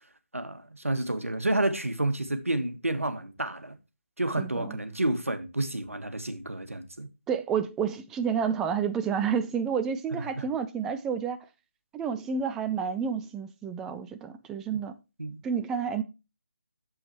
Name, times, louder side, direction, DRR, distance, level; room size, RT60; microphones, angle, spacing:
voice 1, 0.3-3.8 4.2-7.1 10.1-10.4 15.2-15.4, right 1 dB, 80° right, 1.5 m, -30 dB
voice 2, 4.4-4.8 7.3-11.4 11.9-14.9 15.4-16.0, right 7 dB, 5° right, 0.3 m, -30 dB
8.6 x 7.2 x 3.0 m
figure-of-eight pair, 150°, 7 cm